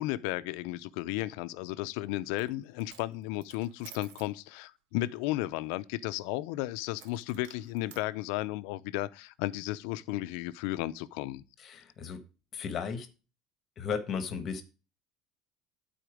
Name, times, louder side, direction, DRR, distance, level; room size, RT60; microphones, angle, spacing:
voice 1, 0.0-11.4, left 16 dB, 70° left, 0.6 m, -34 dB
Coin (dropping), 2.2-2.5 2.8-4.3 7.0-8.1, right 10 dB, 80° right, 0.9 m, -53 dB
voice 2, 11.6-12.2 12.5-13.1 13.8-14.6, left 6 dB, 30° left, 1.2 m, -35 dB
12.5 x 4.4 x 5.0 m
cardioid pair, 170°, 0 cm